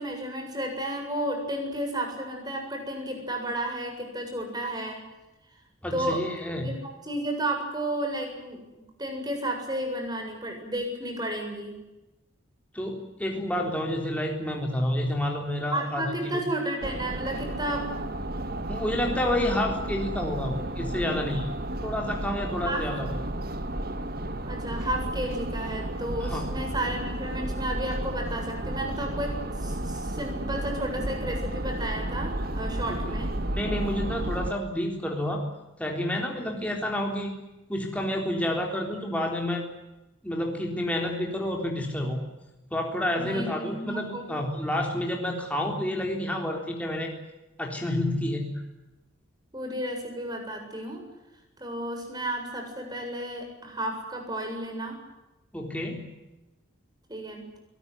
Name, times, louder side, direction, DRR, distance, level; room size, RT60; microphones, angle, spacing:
voice 1, 0.0-5.0 5.9-6.2 6.6-8.6 9.0-11.7 15.7-18.1 22.6-22.9 24.5-33.3 43.2-44.3 49.5-51.0 51.6-55.0 57.1-57.4, right 1 dB, 20° right, 3 dB, 7.7 m, -32 dB
voice 2, 5.8-6.7 12.7-16.5 18.7-21.5 21.8-23.1 26.2-26.5 33.5-35.4 35.8-37.3 37.7-39.7 40.2-42.2 42.7-47.1 47.6-48.5 55.5-56.1, left 1 dB, 5° left, 1 dB, 3.7 m, -29 dB
sound 1, 16.8-34.5, right 1 dB, 50° right, 1.8 m, -32 dB
23.5 x 19.5 x 9.7 m, 1.0 s
head